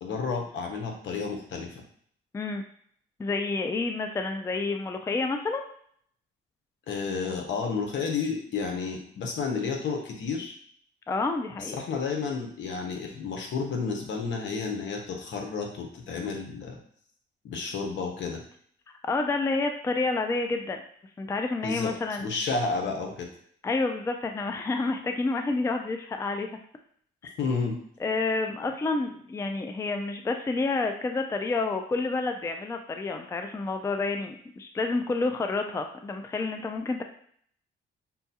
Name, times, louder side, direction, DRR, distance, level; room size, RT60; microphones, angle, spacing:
voice 1, 0.0-1.8 6.9-10.5 11.6-16.8 17.4-18.4 21.6-21.9 22.2-23.3 27.4-27.8, left 4 dB, 70° left, 2 dB, 0.9 m, -31 dB
voice 2, 3.2-5.6 11.1-11.8 19.0-20.8 21.2-22.3 23.6-26.6 28.0-37.0, left 3 dB, 15° left, 5 dB, 0.3 m, -29 dB
5.4 x 2.3 x 2.8 m, 0.62 s
cardioid pair, 90°, 20 cm